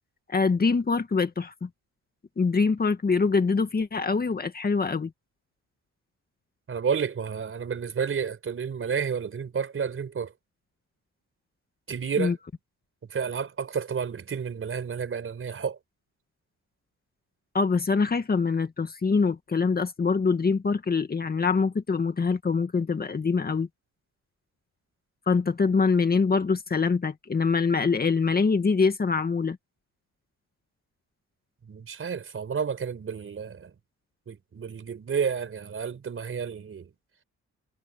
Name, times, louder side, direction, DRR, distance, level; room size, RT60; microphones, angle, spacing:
voice 1, 0.3-1.7 2.4-5.1 12.2-12.4 17.5-23.7 25.3-29.6, left 4 dB, 30° left, 2.1 m, -24 dB
voice 2, 6.7-10.3 11.9-12.4 13.1-15.8 31.7-33.7 34.3-36.9, right 6 dB, 45° right, 4.9 m, -31 dB
cardioid pair, 90°, 30 cm